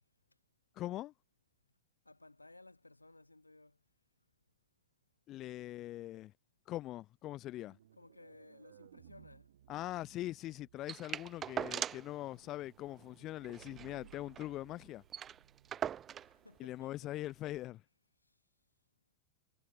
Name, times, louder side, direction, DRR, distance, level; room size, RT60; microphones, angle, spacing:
voice 1, 0.8-1.1 5.3-6.3 6.7-7.8 9.7-15.0 16.6-17.8, left 15 dB, 35° left, 0.8 m, -42 dB
voice 2, 2.1-3.8 8.0-9.5 16.2-17.1, left 2 dB, 85° left, 7.1 m, -58 dB
sound 1, 7.7-16.4, right 11 dB, 60° right, 6.7 m, -62 dB
sound 2, 10.9-12.2 12.5-12.6 12.9-13.0 13.4-14.5 14.8-14.9 15.1-16.4 17.2-17.3, right 9 dB, 25° right, 0.6 m, -41 dB
figure-of-eight pair, 90°, 0 cm